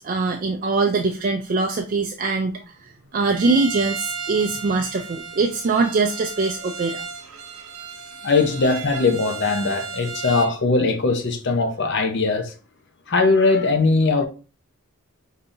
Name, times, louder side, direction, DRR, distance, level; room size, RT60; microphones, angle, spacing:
voice 1, 0.0-7.0, right 3 dB, 40° right, 0.3 m, -23 dB
Bowed string instrument, 3.3-10.6, right 5 dB, 80° right, 0.7 m, -34 dB
voice 2, 8.2-12.5 13.1-14.3, left 3 dB, 50° left, 0.7 m, -20 dB
5.2 x 2.7 x 2.5 m
head